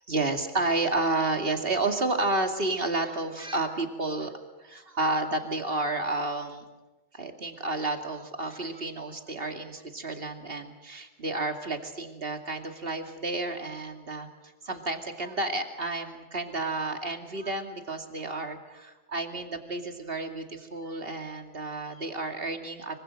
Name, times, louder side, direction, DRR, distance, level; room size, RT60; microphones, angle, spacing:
voice 1, 0.1-4.3 4.6-6.6 7.1-22.9, right 2 dB, 55° right, 5 dB, 2.7 m, -31 dB
25.0 x 24.5 x 6.5 m, 1.1 s
omnidirectional pair, 1.2 m